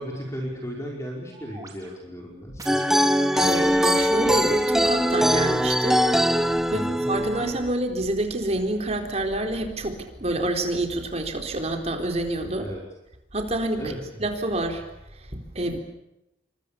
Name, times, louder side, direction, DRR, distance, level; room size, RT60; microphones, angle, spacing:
voice 1, 0.0-3.0 6.7-7.0 12.6-12.8 13.8-14.0, equal, 15° left, -1 dB, 5.1 m, -35 dB
sound 1, 1.3-5.5 6.1-6.2, right 3 dB, 20° right, 4.1 m, -45 dB
sound 2, 2.7-7.7, equal, ahead, 1.1 m, -21 dB
voice 2, 3.4-6.0 6.7-12.7 13.3-13.8 14.2-14.8 15.3-15.8, right 1 dB, 35° right, 4 dB, 4.1 m, -27 dB
29.0 x 25.0 x 7.1 m, 0.87 s
head